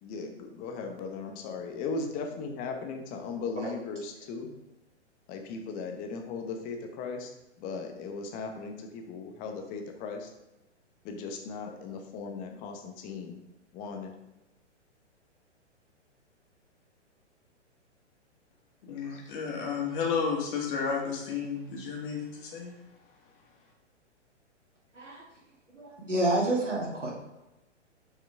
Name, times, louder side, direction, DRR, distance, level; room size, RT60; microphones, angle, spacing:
voice 1, 0.0-4.6 5.3-7.3 7.6-10.3 11.0-13.4 13.7-14.1, left 4 dB, 25° left, 4 dB, 0.9 m, -37 dB
voice 2, 18.8-22.7, left 5 dB, 45° left, -1 dB, 2.1 m, -32 dB
voice 3, 25.7-27.1, right 1 dB, 85° right, -4 dB, 2.4 m, -28 dB
7.1 x 5.8 x 3.4 m, 0.96 s
figure-of-eight pair, 115°, 36 cm